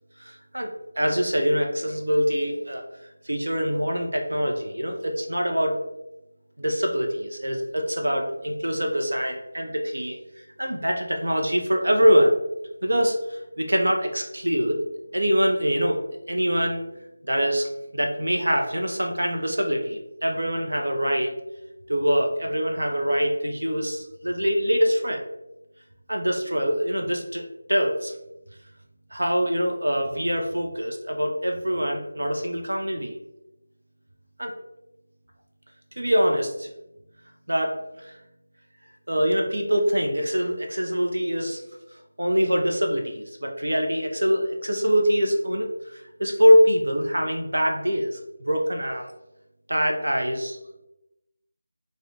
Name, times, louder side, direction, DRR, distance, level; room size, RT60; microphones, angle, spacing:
voice 1, 0.2-0.7 1.0-2.8 3.2-5.8 6.6-10.2 10.6-12.4 12.8-14.8 15.1-16.0 16.3-16.8 17.3-21.3 21.9-25.2 26.1-28.2 29.1-33.2 34.4-34.5 36.0-36.7 37.5-38.1 39.1-41.6 42.2-48.2 48.5-49.1 49.7-50.6, equal, 65° right, 2 dB, 0.5 m, -24 dB
2.4 x 2.1 x 2.8 m, 0.92 s
figure-of-eight pair, 165°, 0 cm